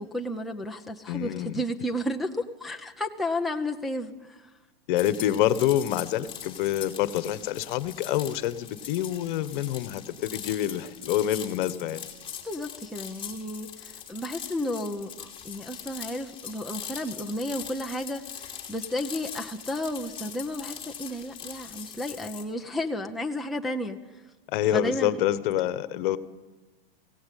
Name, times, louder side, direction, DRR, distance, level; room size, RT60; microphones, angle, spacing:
voice 1, 0.0-4.5 12.4-24.0 24.7-25.2, left 1 dB, ahead, 2 dB, 0.8 m, -32 dB
voice 2, 1.1-1.6 4.9-12.0 24.5-26.2, left 12 dB, 55° left, 14 dB, 1.3 m, -27 dB
sound 1, 5.0-22.4, left 8 dB, 15° left, 2.9 m, -41 dB
21.5 x 17.0 x 8.4 m, 1.2 s
supercardioid pair, 145°, 29 cm